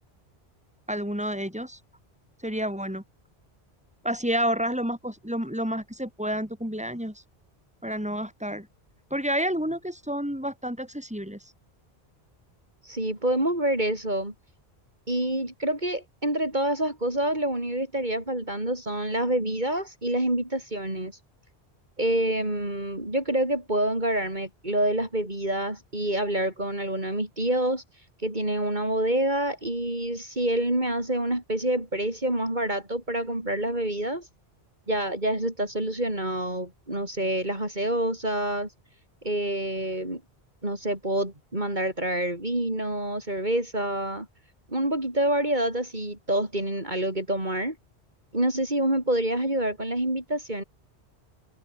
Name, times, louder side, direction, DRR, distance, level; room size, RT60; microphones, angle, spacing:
voice 1, 0.9-1.8 2.4-3.0 4.0-7.2 7.8-8.7 9.1-11.4, equal, 5° right, 7.7 m, -29 dB
voice 2, 12.8-14.3 15.1-21.1 22.0-27.8 28.2-34.3 34.9-38.7 39.2-40.2 40.6-44.3 44.7-47.8 48.3-50.6, right 1 dB, 45° right, 5.9 m, -27 dB
omnidirectional pair, 1.1 m